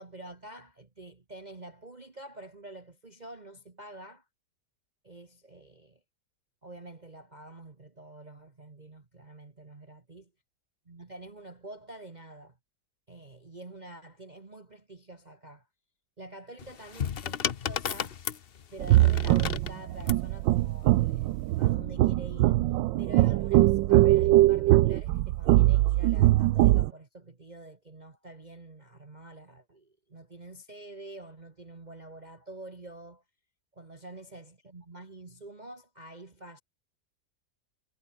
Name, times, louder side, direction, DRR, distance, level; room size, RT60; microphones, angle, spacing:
voice 1, 0.0-4.2 5.0-6.0 6.6-10.2 10.9-12.6 13.1-15.7 16.2-18.2 18.7-22.6 23.0-33.2 33.7-36.6, right 2 dB, 25° right, 1.5 m, -47 dB
sound 1, 16.6-20.3 21.3-21.7, left 8 dB, 50° left, 0.7 m, -34 dB
sound 2, 18.8-26.9, right 16 dB, 85° right, 1.3 m, -22 dB
omnidirectional pair, 2.0 m